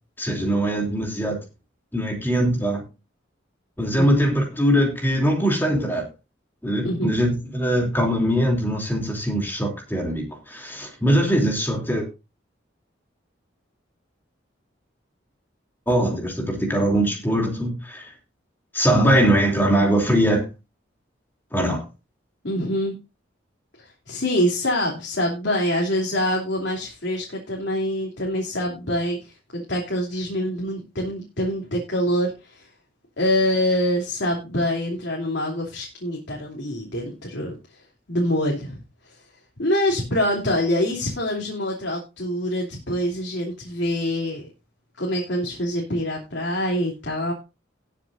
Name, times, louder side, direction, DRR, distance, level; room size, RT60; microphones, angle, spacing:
voice 1, 0.2-1.4 1.9-2.8 3.8-6.1 6.6-12.1 15.9-18.1 18.7-20.4 21.5-21.8, equal, 10° left, 1 dB, 3.0 m, -21 dB
voice 2, 22.4-23.0 23.8-32.7 33.2-37.8 38.1-38.8 39.0-39.2 39.6-44.5 45.0-47.3, left 1 dB, 70° left, -2 dB, 3.1 m, -25 dB
19.0 x 7.4 x 2.6 m, 0.29 s
head